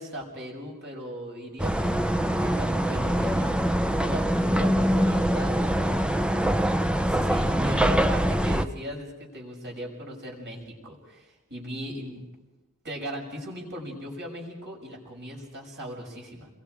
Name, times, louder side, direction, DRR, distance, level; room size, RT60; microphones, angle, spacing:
voice 1, 0.0-6.3 6.9-12.2 12.8-16.5, equal, 55° right, 0 dB, 6.5 m, -38 dB
sound 1, 1.6-8.7, equal, 5° right, 0.7 m, -24 dB
29.5 x 22.5 x 5.0 m, 1.1 s
head